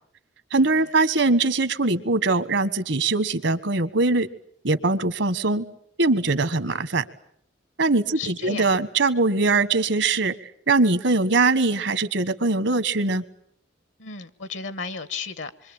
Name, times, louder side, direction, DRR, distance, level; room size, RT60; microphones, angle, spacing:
voice 1, 0.5-4.3 4.6-5.7 6.0-7.1 7.8-10.3 10.7-13.2, right 3 dB, 75° right, 1.4 m, -22 dB
voice 2, 7.9-8.7 14.0-15.7, left 5 dB, 75° left, 1.3 m, -34 dB
26.5 x 24.0 x 8.9 m
head